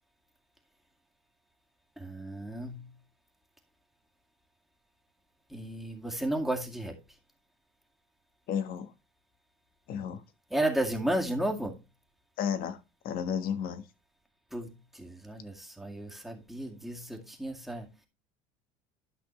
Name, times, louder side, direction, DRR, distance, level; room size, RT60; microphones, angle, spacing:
voice 1, 2.0-2.9 5.5-7.0 10.5-11.8 14.5-18.1, right 1 dB, ahead, 2.1 m, -33 dB
voice 2, 8.5-8.9 9.9-10.2 12.4-12.8 13.0-13.8, left 8 dB, 55° left, 1.4 m, -32 dB
11.5 x 5.9 x 3.2 m
supercardioid pair, 115°, 18 cm